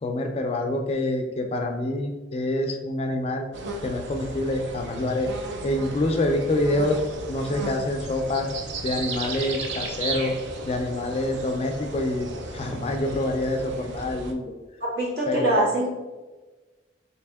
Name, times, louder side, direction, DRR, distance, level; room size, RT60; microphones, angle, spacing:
voice 1, 0.0-3.5 3.8-5.3 5.6-8.5 8.8-10.3 10.6-14.5 15.3-15.6, left 1 dB, 35° left, 3 dB, 0.3 m, -26 dB
sound 1, 3.5-14.3, right 2 dB, 80° right, 0.5 m, -35 dB
voice 2, 14.8-15.9, right 1 dB, 60° right, -7 dB, 1.5 m, -23 dB
3.4 x 2.9 x 3.4 m, 1.2 s
head